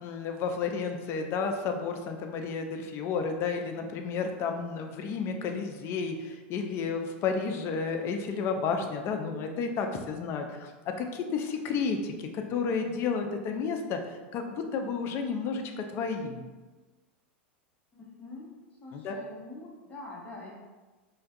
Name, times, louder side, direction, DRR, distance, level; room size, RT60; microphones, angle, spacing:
voice 1, 0.0-14.0 14.3-16.4 18.9-19.2, left 5 dB, 40° left, 4 dB, 0.3 m, -32 dB
voice 2, 17.9-18.5 18.8-20.6, left 2 dB, 20° left, -5 dB, 0.8 m, -45 dB
2.2 x 2.2 x 2.6 m, 1.3 s
hypercardioid pair, 100°, 6 cm